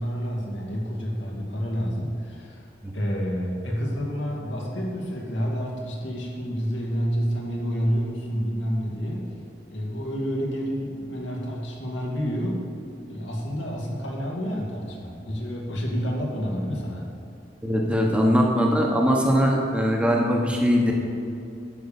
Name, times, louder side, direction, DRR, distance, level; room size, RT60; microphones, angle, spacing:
voice 1, 0.0-9.3 9.7-12.6 13.1-17.1, equal, 85° left, -2 dB, 2.2 m, -29 dB
voice 2, 17.6-20.9, equal, 5° right, -1 dB, 1.2 m, -21 dB
11.0 x 5.2 x 7.0 m, 2.5 s
head